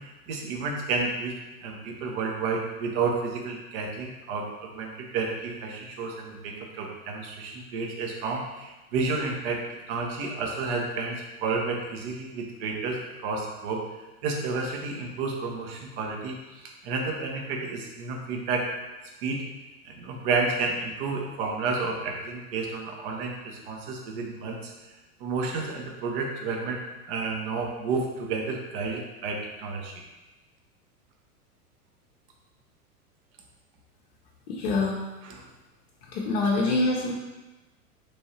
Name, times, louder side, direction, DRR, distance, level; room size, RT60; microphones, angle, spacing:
voice 1, 0.0-1.3 1.6-13.9 14.2-18.7 19.2-19.4 19.8-24.7 25.2-30.0 35.2-35.5, right 4 dB, 40° right, 1 dB, 0.8 m, -31 dB
voice 2, 34.5-35.0 36.1-37.1, left 2 dB, 45° left, -4 dB, 0.7 m, -25 dB
3.2 x 2.6 x 4.2 m, 1.1 s
figure-of-eight pair, 90°, 45 cm